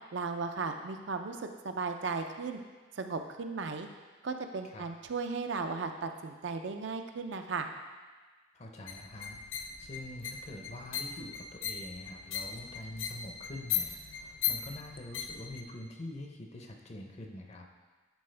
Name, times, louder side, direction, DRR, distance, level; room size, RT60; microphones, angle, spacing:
voice 1, 0.1-2.6 3.0-3.9 4.2-7.7, right 4 dB, 65° right, 6 dB, 0.5 m, -36 dB
voice 2, 8.5-17.7, left 1 dB, 35° left, 3 dB, 0.6 m, -45 dB
sound 1, 8.9-15.6, left 9 dB, 90° left, 0.6 m, -38 dB
10.5 x 4.3 x 3.3 m, 1.3 s
head